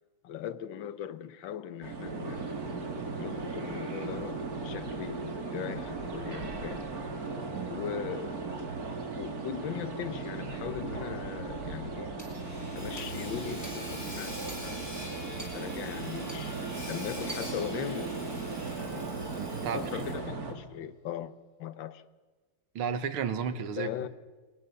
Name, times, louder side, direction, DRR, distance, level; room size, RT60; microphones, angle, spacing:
voice 1, 0.2-2.6 3.2-6.9 7.7-8.4 9.1-12.1 12.7-14.9 15.4-18.2 18.8-19.1 19.7-21.3 21.6-22.0 23.8-24.1, left 10 dB, 70° left, 1.6 m, -39 dB
sound 1, 1.8-20.5, right 4 dB, 45° right, 2.8 m, -37 dB
Hammer / Sawing, 12.2-20.4, equal, 10° left, 7.0 m, -43 dB
voice 2, 19.4-20.0 22.8-24.1, right 6 dB, 90° right, 2.2 m, -33 dB
25.0 x 21.0 x 7.1 m
omnidirectional pair, 2.2 m